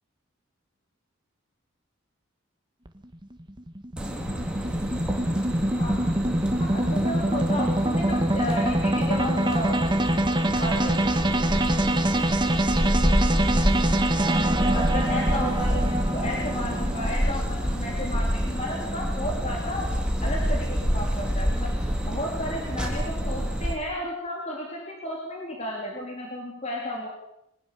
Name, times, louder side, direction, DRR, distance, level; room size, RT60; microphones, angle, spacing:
sound 1, 2.9-17.1, right 1 dB, 20° right, 1.7 m, -25 dB
sound 2, 4.0-23.7, equal, 5° right, 3.6 m, -28 dB
voice 1, 6.6-9.8 10.6-11.0 14.7-19.9 20.2-21.8 22.0-27.1, left 1 dB, 30° left, -1 dB, 3.9 m, -33 dB
23.0 x 19.0 x 7.0 m, 0.81 s
head